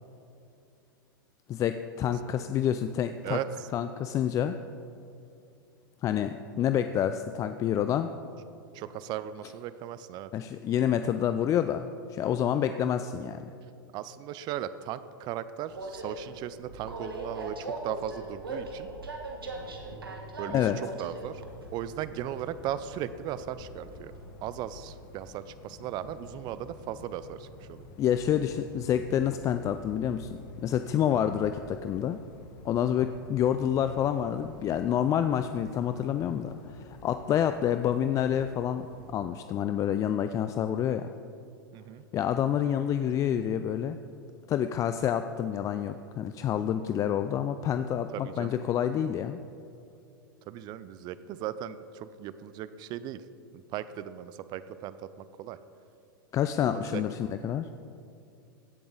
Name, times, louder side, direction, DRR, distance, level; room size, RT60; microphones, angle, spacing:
voice 1, 1.5-3.4 3.7-4.6 6.0-8.1 10.3-13.4 20.5-20.8 28.0-32.2 32.6-38.9 39.1-41.1 42.1-44.0 44.5-49.4 56.3-57.7, left 9 dB, 30° left, 9 dB, 0.3 m, -28 dB
voice 2, 3.2-3.7 8.7-10.3 13.9-18.9 20.4-21.4 21.7-24.2 24.4-27.8 31.1-31.2 41.7-42.1 48.1-48.6 50.5-53.2 53.5-55.6 56.6-57.0, right 11 dB, 40° right, 14 dB, 0.5 m, -37 dB
Train, 15.7-24.3, right 2 dB, 90° right, 1.4 m, -41 dB
sound 1, 20.9-39.1, left 2 dB, 45° left, 1.4 m, -50 dB
16.0 x 6.9 x 3.9 m, 2.5 s
hypercardioid pair, 100°, 12 cm